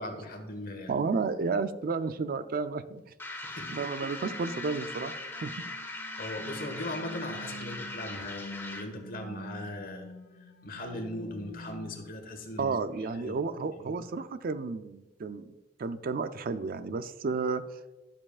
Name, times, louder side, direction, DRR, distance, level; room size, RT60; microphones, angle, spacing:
voice 1, 0.0-1.0 3.4-3.8 6.2-10.1 10.4-12.8 13.2-13.4 13.8-14.0, left 1 dB, 50° left, 4 dB, 1.4 m, -39 dB
voice 2, 0.9-3.0 3.7-5.1 5.4-5.5 12.6-15.5 15.8-17.6, right 4 dB, 50° right, 12 dB, 0.4 m, -32 dB
sound 1, 3.2-9.0, left 2 dB, 10° left, 1.0 m, -40 dB
sound 2, 3.5-12.1, equal, 70° left, 1.5 m, -47 dB
12.5 x 7.2 x 2.4 m, 1.1 s
head